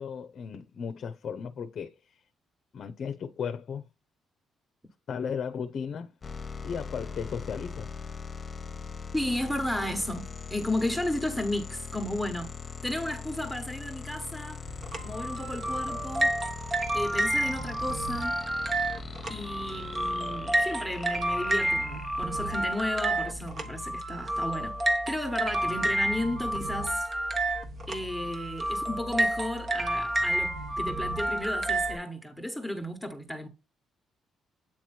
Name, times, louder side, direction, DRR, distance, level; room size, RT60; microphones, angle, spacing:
voice 1, 0.0-2.2 2.7-3.8 5.1-6.1 6.6-7.9, left 6 dB, 60° left, 0.6 m, -35 dB
sound 1, 6.2-22.7, left 5 dB, 35° left, 1.0 m, -41 dB
voice 2, 9.1-12.5 12.8-14.6 15.0-16.4 16.9-18.5 19.3-27.6 27.9-33.5, left 1 dB, ahead, 1.3 m, -33 dB
sound 2, 14.7-32.0, right 1 dB, 40° right, 1.2 m, -30 dB
8.7 x 3.0 x 4.3 m
cardioid pair, 90°, 0 cm